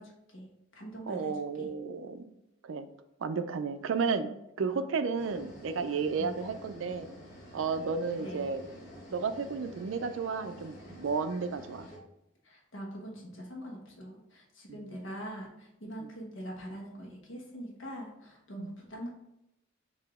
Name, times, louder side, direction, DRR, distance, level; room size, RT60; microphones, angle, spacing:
voice 1, 0.0-1.7 4.6-4.9 6.2-6.5 8.2-8.5 12.4-19.1, equal, 70° left, -2 dB, 1.1 m, -43 dB
voice 2, 1.1-2.2 2.6-2.9 3.2-7.1 7.5-8.6 9.1-11.9 18.6-18.7, right 5 dB, 70° right, 10 dB, 0.4 m, -32 dB
sound 1, 5.2-12.0, equal, 50° left, 1.2 m, -49 dB
4.8 x 2.8 x 3.5 m, 0.85 s
head